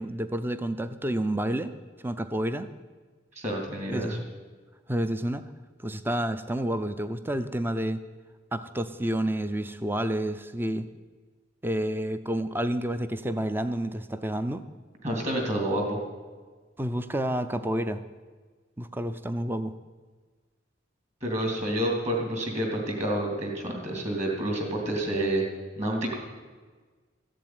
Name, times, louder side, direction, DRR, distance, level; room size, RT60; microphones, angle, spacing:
voice 1, 0.0-1.7 2.0-2.7 3.9-4.2 4.9-5.5 5.8-8.0 8.5-10.9 11.6-14.6 16.8-18.0 18.8-19.7, right 1 dB, 10° right, 11 dB, 0.5 m, -29 dB
voice 2, 3.3-4.2 15.0-16.0 21.2-25.4 25.8-26.1, right 1 dB, 35° right, 1 dB, 3.1 m, -28 dB
14.5 x 7.6 x 9.5 m, 1.4 s
head